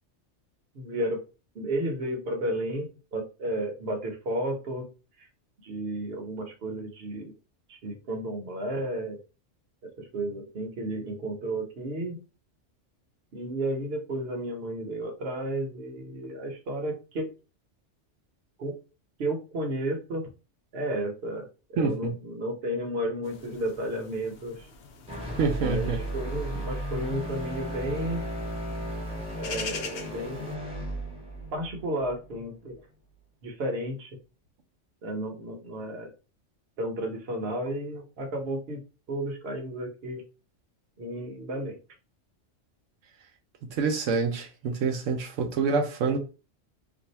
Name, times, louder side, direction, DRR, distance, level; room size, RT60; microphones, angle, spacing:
voice 1, 0.7-1.2 1.5-4.9 5.2-5.3 5.6-7.3 7.7-9.2 10.0-12.2 13.3-17.3 18.6-18.7 19.2-20.2 20.7-24.7 25.6-28.2 29.4-30.6 31.5-32.8 33.4-34.2 35.0-36.1 36.8-38.8 39.1-40.2 41.0-41.8, right 1 dB, 55° right, 1.0 m, -32 dB
voice 2, 21.8-22.1 25.4-26.0 43.7-46.2, right 4 dB, 85° right, 1.0 m, -26 dB
sound 1, 23.2-30.6, left 5 dB, 65° left, 0.8 m, -44 dB
sound 2, 25.1-33.2, right 1 dB, 5° right, 0.8 m, -35 dB
2.6 x 2.4 x 4.1 m
omnidirectional pair, 1.3 m